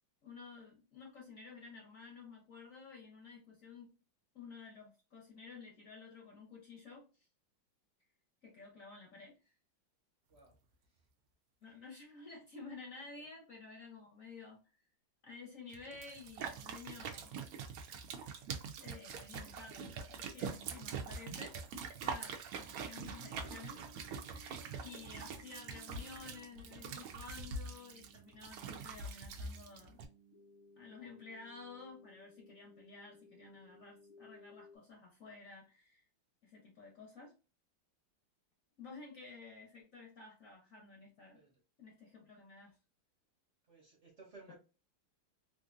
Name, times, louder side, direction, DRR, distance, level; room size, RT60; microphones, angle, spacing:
voice 1, 0.2-3.9 4.3-7.3 8.4-9.5 11.6-14.6 15.2-17.4 18.8-21.6 22.0-23.8 24.8-30.0 30.8-36.1 36.4-37.3 38.8-41.4 41.8-42.7, left 4 dB, 55° left, -1 dB, 1.0 m, -52 dB
sound 1, 15.7-30.0, right 5 dB, 80° right, 0.7 m, -44 dB
sound 2, 23.1-34.8, equal, 80° left, 1.5 m, -61 dB
voice 2, 43.7-44.6, right 3 dB, 45° right, -2 dB, 1.0 m, -57 dB
3.4 x 2.5 x 2.5 m, 0.33 s
omnidirectional pair, 2.1 m